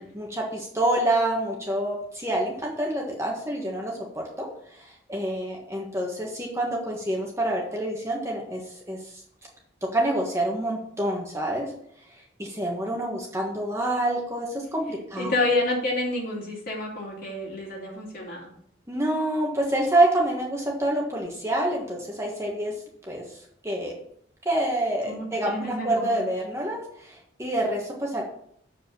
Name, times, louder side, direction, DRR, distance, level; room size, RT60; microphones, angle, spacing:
voice 1, 0.0-4.5 4.7-8.6 8.9-9.0 9.9-11.7 12.4-15.3 18.9-22.7 23.1-23.4 23.6-23.9 24.4-28.2, right 1 dB, 15° right, -1 dB, 1.4 m, -27 dB
voice 2, 15.2-18.5 25.1-26.3, left 2 dB, 50° left, -3 dB, 2.8 m, -29 dB
7.4 x 5.0 x 6.8 m, 0.66 s
head